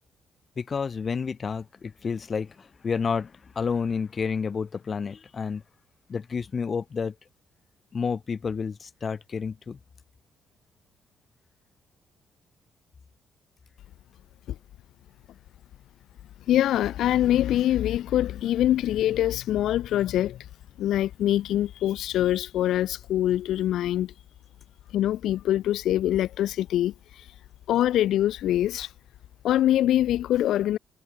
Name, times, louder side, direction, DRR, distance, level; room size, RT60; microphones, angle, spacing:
voice 1, 0.6-5.6 6.1-7.1 7.9-9.8, left 5 dB, 40° left, 3.2 m, -30 dB
voice 2, 16.5-20.4 20.8-24.1 24.9-26.9 27.7-28.9 29.4-30.8, left 12 dB, 80° left, 0.9 m, -24 dB
cardioid pair, 90°, 0 cm